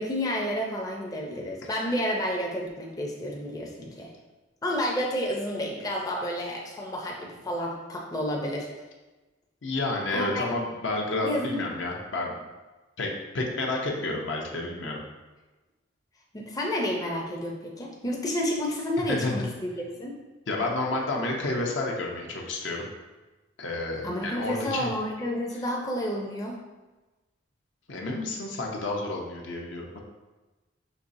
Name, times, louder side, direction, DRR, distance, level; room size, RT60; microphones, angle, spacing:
voice 1, 0.0-4.1 4.6-8.7 10.1-10.4 11.2-11.6 16.3-20.2 24.0-26.6, equal, 20° left, -2 dB, 0.5 m, -30 dB
voice 2, 9.6-12.3 13.0-15.0 19.1-19.5 20.5-22.9 23.6-24.9 27.9-30.0, left 2 dB, 70° left, -1 dB, 0.7 m, -30 dB
5.2 x 3.1 x 2.6 m, 1.2 s
head